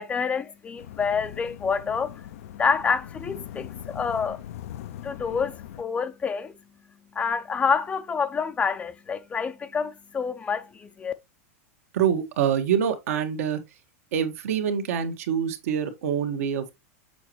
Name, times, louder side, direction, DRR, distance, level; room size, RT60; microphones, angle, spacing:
voice 1, 0.0-2.1 2.6-4.4 5.0-6.5 7.2-11.1, left 5 dB, 15° left, 0.5 m, -27 dB
sound 1, 0.8-5.8, left 11 dB, 75° left, 0.5 m, -41 dB
voice 2, 11.9-13.6 14.1-16.7, right 8 dB, 75° right, 1.4 m, -25 dB
6.9 x 5.1 x 3.0 m
supercardioid pair, 145°, 8 cm